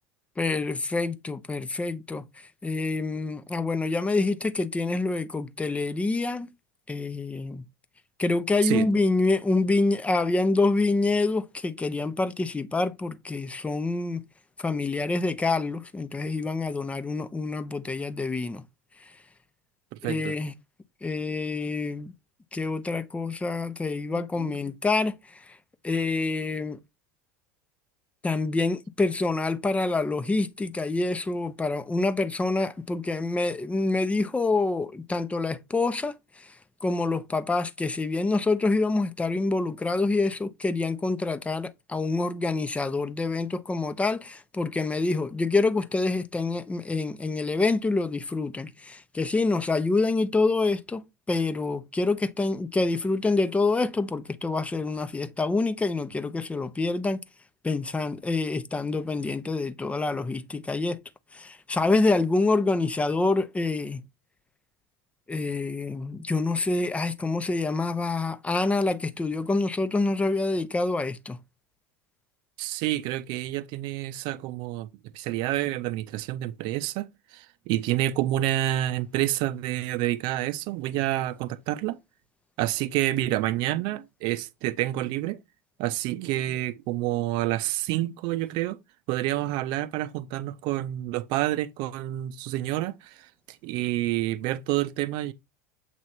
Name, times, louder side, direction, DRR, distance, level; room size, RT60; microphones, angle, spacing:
voice 1, 0.4-2.2 2.6-6.5 6.9-7.6 8.2-14.2 14.6-18.6 20.0-20.5 21.0-22.1 22.5-25.6 25.8-26.8 28.2-36.5 36.8-57.2 57.6-61.0 61.3-64.0 65.3-71.4, left 3 dB, 15° left, 0.8 m, -26 dB
voice 2, 19.9-20.4 24.1-24.6 72.6-74.9 75.1-82.0 82.6-85.4 85.8-88.8 89.1-95.3, right 15 dB, 55° right, 0.7 m, -28 dB
7.7 x 3.1 x 4.2 m
hypercardioid pair, 85°, 9 cm